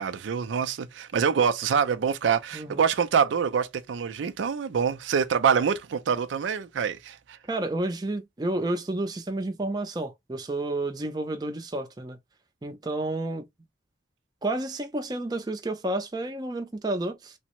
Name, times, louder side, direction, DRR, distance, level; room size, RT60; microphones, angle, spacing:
voice 1, 0.0-7.4, right 6 dB, 85° right, 0.4 m, -25 dB
voice 2, 2.5-2.8 7.5-12.2 12.6-13.4 14.4-17.3, right 2 dB, 20° right, 0.4 m, -30 dB
3.4 x 2.0 x 2.8 m
head